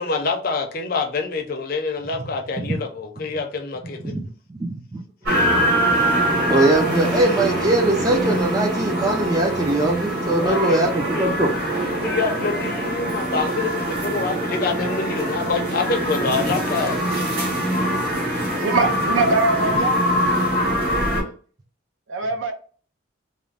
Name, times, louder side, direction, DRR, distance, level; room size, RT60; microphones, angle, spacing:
voice 1, 0.0-4.2 10.3-10.8 11.1-11.3 12.0-17.0, left 4 dB, 45° left, 0.5 m, -26 dB
voice 2, 4.7-5.0 6.5-11.5, right 2 dB, 20° right, 0.3 m, -21 dB
sound 1, 5.2-21.2, right 1 dB, 50° right, 1.2 m, -23 dB
voice 3, 18.6-20.0 20.9-21.3 22.1-22.5, right 3 dB, 75° right, 0.6 m, -23 dB
2.5 x 2.0 x 3.1 m
head